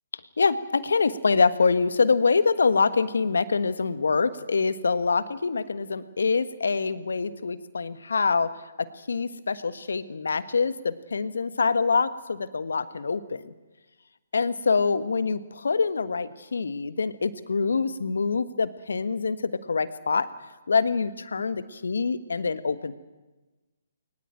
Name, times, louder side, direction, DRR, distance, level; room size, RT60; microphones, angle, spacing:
voice 1, 0.4-8.5 8.8-13.5 14.3-20.3 20.7-22.9, left 4 dB, 75° left, 14 dB, 1.4 m, -25 dB
21.5 x 19.5 x 9.0 m, 1.2 s
figure-of-eight pair, 140°, 0 cm